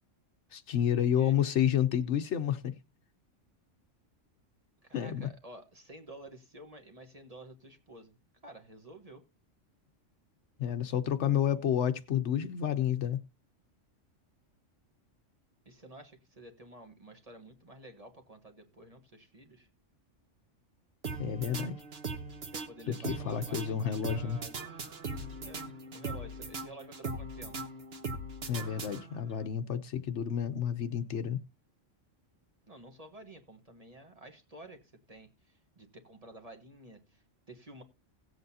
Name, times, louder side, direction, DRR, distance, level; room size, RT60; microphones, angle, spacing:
voice 1, 0.5-2.7 4.9-5.3 10.6-13.2 21.2-21.8 23.1-24.4 28.5-31.4, left 9 dB, 70° left, 1.0 m, -30 dB
voice 2, 4.8-8.2 8.4-9.2 15.6-19.7 22.4-24.7 25.4-25.7 25.9-27.5 32.7-37.8, right 1 dB, 30° right, 1.3 m, -51 dB
sound 1, 21.0-29.4, right 3 dB, 55° right, 1.3 m, -40 dB
17.5 x 7.8 x 2.7 m
omnidirectional pair, 1.3 m